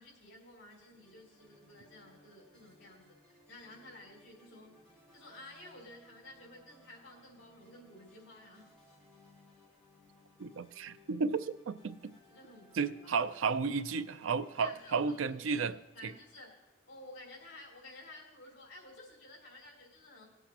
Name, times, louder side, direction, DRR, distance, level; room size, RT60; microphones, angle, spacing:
voice 1, 0.0-4.8 5.1-8.7 12.3-13.1 14.6-15.7 15.9-20.3, left 1 dB, 60° left, -2 dB, 3.0 m, -53 dB
sound 1, 0.7-18.1, left 1 dB, 5° left, 2.4 m, -64 dB
voice 2, 10.4-12.1 12.7-15.7 16.0-16.1, right 5 dB, 90° right, 13 dB, 0.5 m, -33 dB
18.0 x 8.0 x 2.9 m, 0.91 s
head